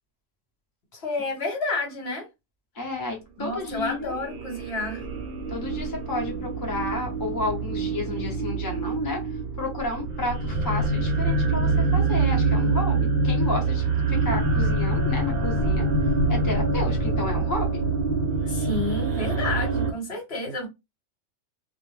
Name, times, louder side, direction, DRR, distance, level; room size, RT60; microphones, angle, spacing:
voice 1, 0.9-2.3 3.4-5.0 18.4-20.7, left 2 dB, 55° left, 1.3 m, -30 dB
voice 2, 2.7-4.2 5.5-15.9 16.3-17.8, left 2 dB, 20° left, 0.6 m, -32 dB
sound 1, 3.7-19.9, right 3 dB, 60° right, 0.7 m, -25 dB
2.4 x 2.1 x 3.1 m
omnidirectional pair, 1.4 m